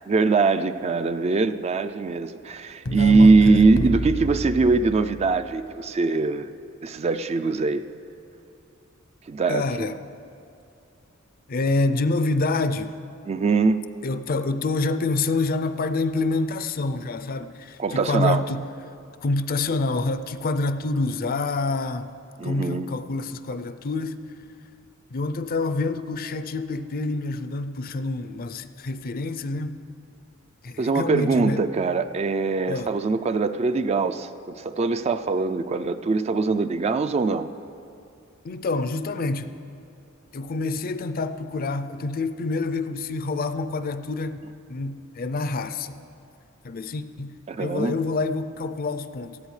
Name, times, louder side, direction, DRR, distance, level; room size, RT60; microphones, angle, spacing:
voice 1, 0.1-6.5 6.8-7.8 9.3-9.9 13.3-13.8 17.8-18.4 22.4-22.9 30.8-37.5 47.5-47.9, right 3 dB, 30° right, 10 dB, 0.3 m, -22 dB
sound 1, 2.8-5.4, left 1 dB, 80° left, 1.0 m, -29 dB
voice 2, 3.0-3.6 9.5-10.0 11.5-12.9 14.0-18.7 19.2-22.1 22.4-24.2 25.1-29.8 30.6-31.6 32.7-32.9 38.4-39.5 40.3-44.4 44.7-45.9 46.6-49.4, left 3 dB, 45° left, 11 dB, 0.5 m, -27 dB
18.5 x 14.0 x 3.2 m, 2.6 s
head